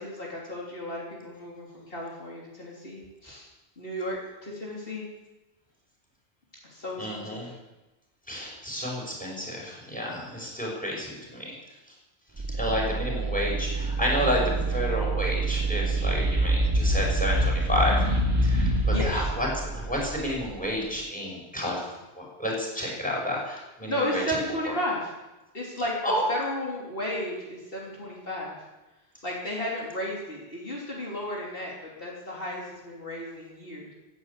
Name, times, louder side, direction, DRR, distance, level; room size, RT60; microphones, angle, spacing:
voice 1, 0.0-3.5 3.8-5.1 6.6-7.6 18.9-19.3 23.9-25.1 25.5-28.6 29.2-33.9, left 1 dB, 60° left, -4 dB, 3.5 m, -34 dB
voice 2, 7.0-7.5 8.3-11.5 12.5-18.0 18.4-21.8 22.2-24.2 24.7-24.8 26.0-26.2, equal, 5° left, -2 dB, 6.0 m, -30 dB
sound 1, 12.4-21.1, right 4 dB, 25° right, 0.4 m, -30 dB
sound 2, 15.7-19.4, left 1 dB, 70° right, 2.4 m, -25 dB
17.0 x 9.7 x 8.4 m, 1.1 s
omnidirectional pair, 1.1 m